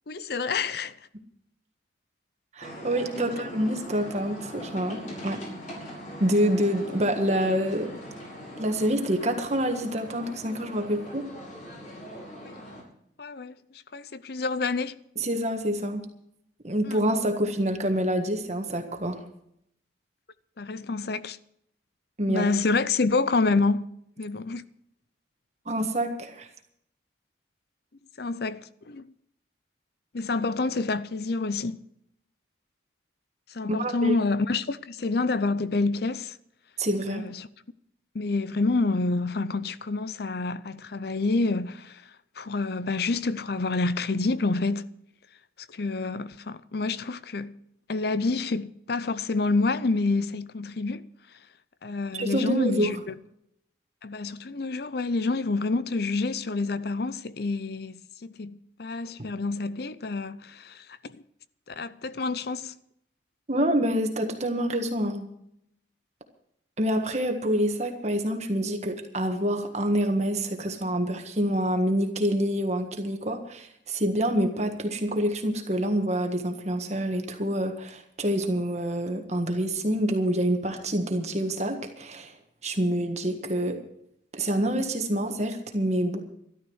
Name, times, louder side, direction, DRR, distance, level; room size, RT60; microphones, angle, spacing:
voice 1, 0.1-0.9 3.1-3.5 12.4-12.6 13.2-13.5 13.9-15.0 16.8-17.0 20.6-21.4 22.3-23.9 24.2-24.7 28.2-29.1 30.1-31.8 33.5-36.4 37.1-37.5 38.1-44.9 45.7-47.6 47.9-51.1 51.8-53.1 54.0-61.2 61.7-62.8, left 3 dB, 55° left, 0.6 m, -28 dB
voice 2, 2.5-5.4 6.2-7.9 8.6-11.3 15.2-16.0 16.6-19.2 22.2-22.5 25.6-26.5 33.7-34.2 36.8-37.2 52.1-52.9 63.5-65.3 66.8-82.3 82.6-83.8 84.4-86.2, right 1 dB, 35° right, 1.6 m, -27 dB
sound 1, 2.6-12.8, equal, 40° left, 5.1 m, -41 dB
13.5 x 11.5 x 6.4 m
head